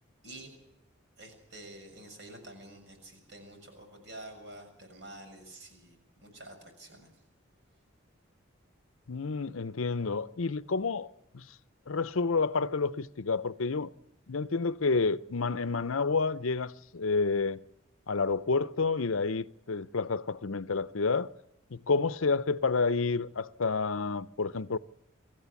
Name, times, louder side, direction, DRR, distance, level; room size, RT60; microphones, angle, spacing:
voice 1, 1.2-7.1, right 1 dB, 55° right, 6.7 m, -48 dB
voice 2, 9.1-11.5 11.9-13.9 14.3-17.6 18.1-21.3 21.7-24.8, left 4 dB, 85° left, 0.7 m, -29 dB
25.5 x 14.5 x 7.2 m
head